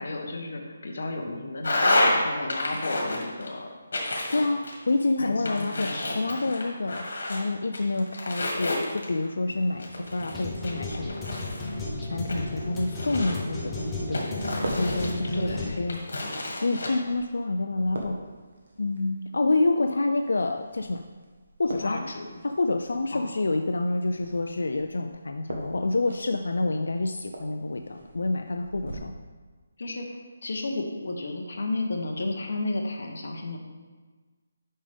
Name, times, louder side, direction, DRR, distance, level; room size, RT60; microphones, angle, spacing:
voice 1, 0.0-3.7 5.2-6.5 15.3-15.8 21.8-22.3 23.1-23.4 29.8-30.1 30.4-33.6, left 2 dB, 55° left, 2 dB, 1.0 m, -33 dB
sound 1, 1.6-2.2 2.5-3.5 3.9-5.0 5.4-7.4 7.7-9.3 9.8-11.7 12.3-13.5 14.1-15.5 15.9-16.9, left 2 dB, 70° left, 1.9 m, -29 dB
voice 2, 4.3-7.0 7.3-11.2 12.0-16.0 16.3-18.2 18.8-21.0 21.6-22.1 22.4-29.1, left 2 dB, 90° left, 5 dB, 0.4 m, -28 dB
sound 2, 9.5-15.7, left 2 dB, 5° left, 0.6 m, -34 dB
sound 3, 11.2-29.0, right 1 dB, 45° right, 1.2 m, -43 dB
8.6 x 5.4 x 3.5 m, 1.4 s
hypercardioid pair, 180°, 0 cm